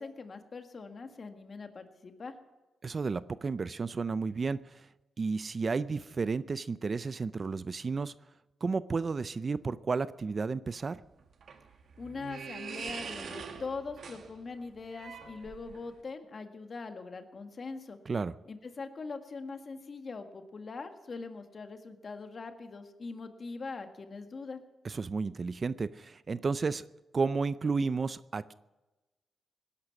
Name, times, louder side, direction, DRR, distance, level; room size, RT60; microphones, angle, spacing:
voice 1, 0.0-2.4 12.0-18.0 18.5-24.6, left 4 dB, 45° left, 6 dB, 1.7 m, -42 dB
voice 2, 2.8-4.9 5.2-8.1 8.6-11.0 18.1-18.4 24.8-26.9 27.1-28.5, right 4 dB, 40° right, 16 dB, 0.4 m, -32 dB
sound 1, 11.0-16.0, right 6 dB, 70° right, 1.3 m, -44 dB
18.5 x 11.0 x 5.9 m, 1.1 s
cardioid pair, 85°, 0 cm